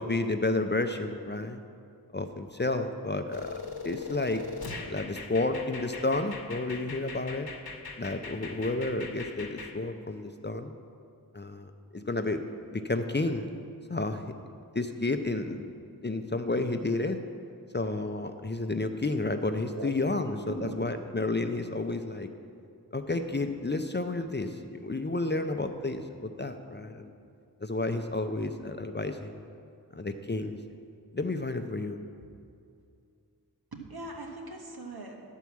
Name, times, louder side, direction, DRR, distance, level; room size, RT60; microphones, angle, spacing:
voice 1, 0.0-1.6 2.1-4.4 4.9-7.5 8.0-10.7 11.3-12.4 12.7-13.5 13.9-14.2 14.7-15.7 16.0-17.2 17.7-22.3 22.9-27.1 27.6-29.4 29.9-30.6 31.1-32.0, left 2 dB, 30° left, 7 dB, 0.5 m, -31 dB
sound 1, 3.3-9.7, left 4 dB, 70° left, 0.9 m, -40 dB
voice 2, 19.7-20.9 33.7-35.3, right 2 dB, 70° right, 1 dB, 1.2 m, -41 dB
11.0 x 4.6 x 7.2 m, 2.4 s
wide cardioid pair, 40°, 38 cm